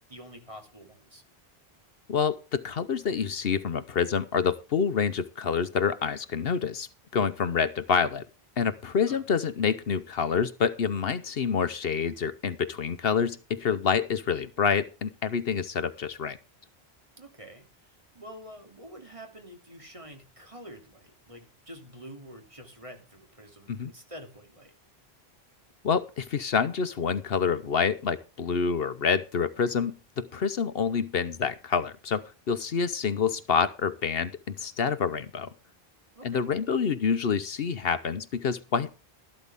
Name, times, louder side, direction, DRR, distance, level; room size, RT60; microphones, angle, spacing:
voice 1, 0.1-1.2 9.1-9.2 17.2-24.7 36.1-36.5, equal, 30° right, 3 dB, 2.9 m, -47 dB
voice 2, 2.1-6.9 7.1-8.2 8.6-16.4 23.7-23.9 25.8-35.5 36.2-39.0, left 6 dB, 65° left, 12 dB, 1.0 m, -27 dB
13.0 x 12.5 x 3.5 m, 0.31 s
omnidirectional pair, 1.1 m